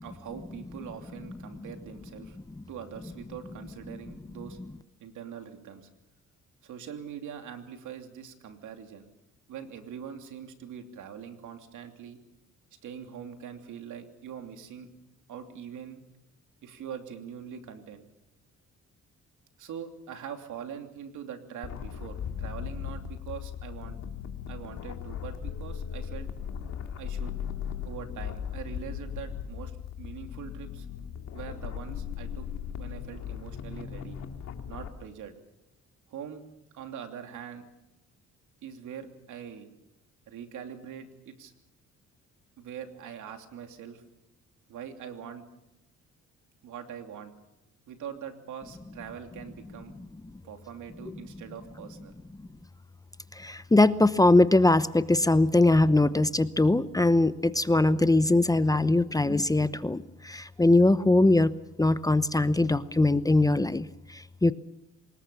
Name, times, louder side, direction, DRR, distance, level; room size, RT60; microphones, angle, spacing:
voice 1, 0.0-2.4 2.7-4.6 5.0-5.9 6.6-9.0 9.5-12.2 12.8-14.9 15.3-16.0 16.6-18.0 19.6-24.0 24.5-26.3 27.0-27.3 27.8-30.9 31.3-32.5 32.7-34.2 34.7-35.3 36.1-36.4 36.7-37.6 38.6-39.7 40.3-41.5 42.6-44.0 44.7-45.4 46.6-47.3 47.9-49.9 50.4-52.1, right 8 dB, 80° right, 6 dB, 3.0 m, -43 dB
sound 1, 21.6-34.9, left 8 dB, 65° left, 2.4 m, -37 dB
voice 2, 53.3-61.5 61.8-64.5, left 2 dB, 10° left, 14 dB, 0.8 m, -22 dB
25.5 x 20.5 x 7.1 m, 0.89 s
cardioid pair, 90°, 30 cm